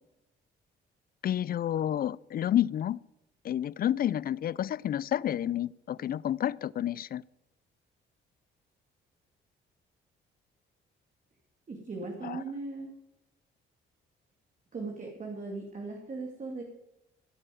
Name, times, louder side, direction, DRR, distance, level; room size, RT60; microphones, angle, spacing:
voice 1, 1.2-3.0 3.4-7.2 12.2-12.4, left 11 dB, 50° left, 0.4 m, -30 dB
voice 2, 11.7-12.9 14.7-16.6, right 3 dB, 40° right, 2.6 m, -38 dB
15.5 x 7.5 x 7.8 m
cardioid pair, 90°, 20 cm